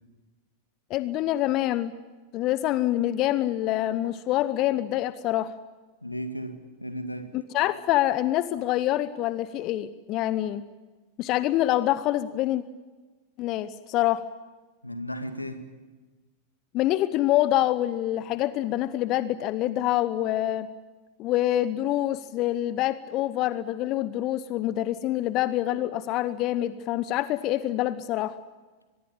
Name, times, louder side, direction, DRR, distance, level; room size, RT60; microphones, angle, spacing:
voice 1, 0.9-1.9 2.3-5.5 7.5-10.6 11.2-12.6 13.4-14.2 16.7-20.7 21.2-28.4, left 14 dB, 40° left, 0.9 m, -26 dB
voice 2, 6.0-7.3 14.8-15.7, equal, 85° left, 2.2 m, -35 dB
24.0 x 22.0 x 9.0 m
figure-of-eight pair, 90°, 0 cm